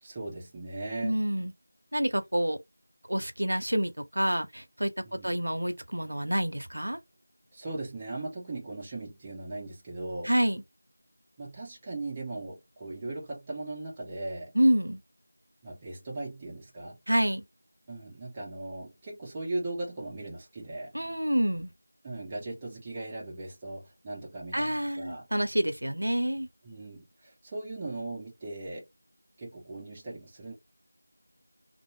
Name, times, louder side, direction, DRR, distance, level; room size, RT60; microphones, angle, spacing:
voice 1, 0.0-1.2 5.0-5.3 7.5-10.3 11.4-14.5 15.6-17.0 17.9-20.9 22.0-25.3 26.6-28.9 29.4-30.6, right 2 dB, 15° right, 0.5 m, -38 dB
voice 2, 1.0-1.5 1.9-2.6 3.1-7.0 10.2-10.6 14.5-15.0 17.1-17.4 20.9-21.7 24.5-26.5, equal, 80° right, 0.7 m, -28 dB
2.7 x 2.0 x 3.2 m
figure-of-eight pair, 175°, 0 cm